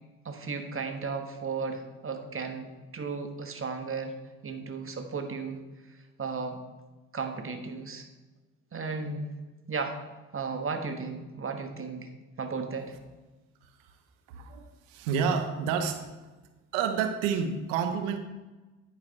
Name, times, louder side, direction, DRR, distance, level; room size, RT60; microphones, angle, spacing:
voice 1, 0.2-4.2 4.4-5.6 5.9-6.6 7.1-8.1 8.7-9.3 9.7-10.0 10.3-12.1 12.4-12.9, right 4 dB, 35° right, 6 dB, 1.5 m, -35 dB
voice 2, 14.3-16.2 16.7-18.2, right 6 dB, 80° right, 7 dB, 1.0 m, -29 dB
10.0 x 9.2 x 3.3 m, 1.2 s
hypercardioid pair, 45°, 39 cm